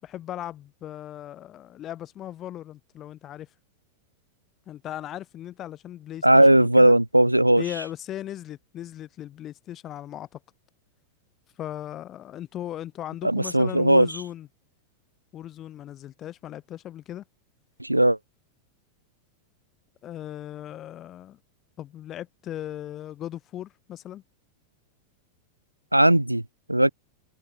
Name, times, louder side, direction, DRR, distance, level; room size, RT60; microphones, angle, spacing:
voice 1, 0.0-3.5 4.7-7.0 7.6-10.4 11.6-14.5 15.3-17.2 20.0-21.4 21.8-24.2, left 12 dB, 30° left, 6.6 m, -37 dB
voice 2, 6.2-7.6 13.2-14.1 17.8-18.2 25.9-26.4 26.7-26.9, right 1 dB, 85° right, 2.6 m, -18 dB
figure-of-eight pair, 90°, 0 cm